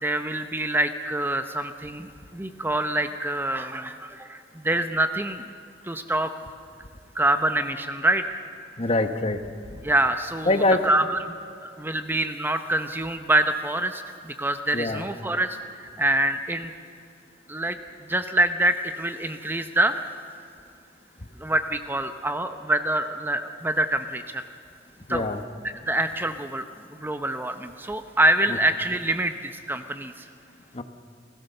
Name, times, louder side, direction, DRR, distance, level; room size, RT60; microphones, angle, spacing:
voice 1, 0.0-5.4 5.8-6.3 7.1-8.4 9.8-11.4 11.6-16.7 17.5-17.8 18.0-20.0 21.4-24.5 25.1-25.2 25.6-26.6 27.0-30.3, right 1 dB, 10° right, 8 dB, 0.7 m, -26 dB
voice 2, 8.8-9.4 9.7-9.8 10.4-10.9 14.7-15.1 25.1-25.4 30.7-30.8, left 2 dB, 30° left, 8 dB, 1.1 m, -23 dB
28.5 x 16.0 x 6.7 m, 2.4 s
head